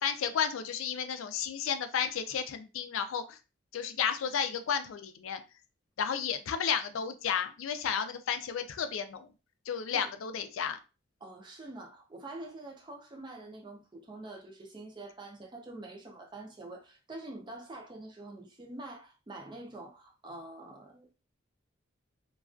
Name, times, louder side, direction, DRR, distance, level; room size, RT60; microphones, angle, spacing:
voice 1, 0.0-3.4 3.7-5.4 6.0-9.3 9.7-10.8, left 7 dB, 85° left, 0.4 m, -32 dB
voice 2, 11.2-21.1, right 2 dB, 25° right, 0.4 m, -46 dB
2.3 x 2.2 x 2.4 m
head